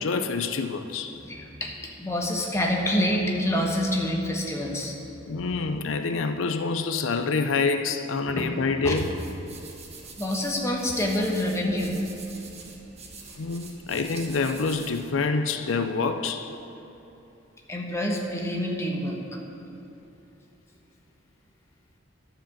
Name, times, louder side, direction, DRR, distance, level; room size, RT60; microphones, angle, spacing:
voice 1, 0.0-1.2 5.3-9.1 13.4-16.5, left 4 dB, 85° left, 8 dB, 0.5 m, -27 dB
voice 2, 1.2-5.2 8.3-8.5 8.8-9.0 10.2-12.0 17.7-19.4, left 1 dB, 15° left, -1 dB, 1.2 m, -27 dB
sound 1, 8.9-15.0, right 4 dB, 35° right, 1.1 m, -45 dB
11.5 x 5.1 x 7.1 m, 2.9 s
head